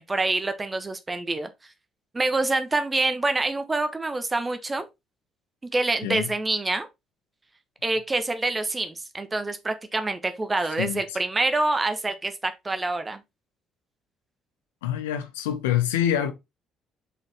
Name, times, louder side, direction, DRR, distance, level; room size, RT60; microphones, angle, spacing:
voice 1, 0.0-1.5 2.1-4.8 5.7-6.9 7.8-13.2, right 2 dB, 20° right, 1.3 m, -26 dB
voice 2, 14.8-16.3, left 11 dB, 75° left, 0.9 m, -25 dB
6.5 x 5.4 x 3.4 m
figure-of-eight pair, 45°, 0 cm